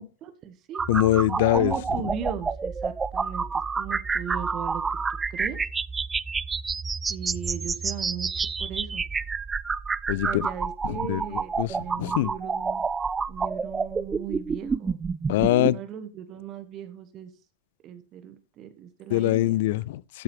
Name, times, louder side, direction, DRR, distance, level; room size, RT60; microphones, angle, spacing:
voice 1, 0.0-0.8 1.5-4.8 5.3-5.6 7.1-9.0 10.2-12.8 13.3-15.0 15.6-17.3 17.8-19.6, right 9 dB, 35° right, 1.2 m, -38 dB
sound 1, 0.7-15.7, right 5 dB, 15° right, 0.4 m, -29 dB
voice 2, 0.9-1.7 10.1-10.5 10.8-12.3 15.3-15.8 19.1-20.2, left 15 dB, 50° left, 0.4 m, -23 dB
13.5 x 7.4 x 3.1 m
figure-of-eight pair, 90°, 0 cm